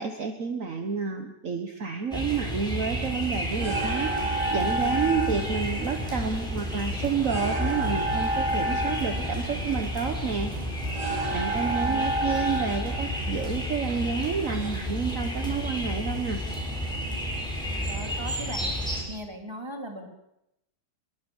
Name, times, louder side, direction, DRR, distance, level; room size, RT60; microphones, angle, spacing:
voice 1, 0.0-10.5 11.3-16.4, right 6 dB, 55° right, 6 dB, 1.7 m, -30 dB
sound 1, 2.1-19.0, equal, ahead, 6.5 m, -31 dB
sound 2, 3.0-14.7, right 1 dB, 80° right, 3.7 m, -31 dB
voice 2, 11.7-12.1 17.9-18.8 19.1-20.1, right 1 dB, 15° right, 2 dB, 3.6 m, -38 dB
24.0 x 22.0 x 7.2 m, 0.85 s
omnidirectional pair, 1.8 m